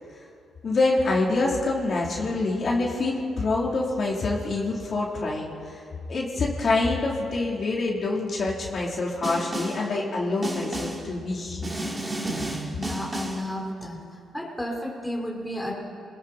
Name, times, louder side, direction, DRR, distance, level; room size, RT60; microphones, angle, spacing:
voice 1, 0.6-5.8 6.1-11.9 12.2-12.6, left 3 dB, 45° left, -3 dB, 3.9 m, -26 dB
Snare drum, 9.2-9.9 10.4-11.1 11.6-13.5, right 1 dB, 20° right, 3.3 m, -32 dB
voice 2, 12.8-14.0 14.3-15.8, left 1 dB, 5° left, -2 dB, 4.5 m, -32 dB
27.5 x 21.5 x 4.5 m, 2.5 s
cardioid pair, 90°, 0 cm